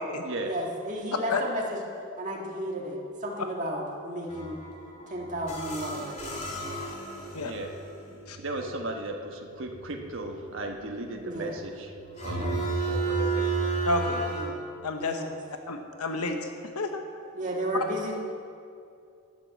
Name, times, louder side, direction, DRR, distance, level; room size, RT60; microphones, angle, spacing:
voice 1, 0.4-1.8 2.2-4.6 5.1-7.4 11.2-11.6 12.3-12.6 14.3-14.6 15.0-15.3 17.3-18.1, right 1 dB, 35° right, -1 dB, 1.8 m, -34 dB
sound 1, 4.3-14.4, right 3 dB, 30° left, 2.3 m, -33 dB
voice 2, 8.1-11.9 12.2-13.5, right 2 dB, 60° right, 2 dB, 1.3 m, -36 dB
voice 3, 13.8-14.2 14.8-15.2 15.7-16.5 16.7-17.0, left 2 dB, 90° left, 5 dB, 1.0 m, -30 dB
11.5 x 9.6 x 7.6 m, 2.4 s
head